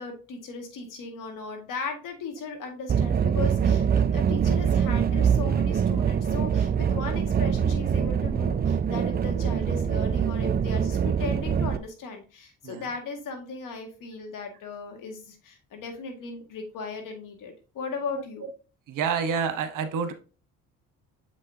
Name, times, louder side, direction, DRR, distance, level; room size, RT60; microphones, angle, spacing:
voice 1, 0.0-18.5, left 4 dB, 70° left, 4 dB, 1.9 m, -37 dB
sound 1, 2.9-11.8, right 7 dB, 30° right, 0.4 m, -24 dB
voice 2, 18.9-20.1, right 6 dB, 70° right, 9 dB, 1.1 m, -28 dB
7.1 x 5.3 x 2.7 m, 0.35 s
cardioid pair, 85°, 33 cm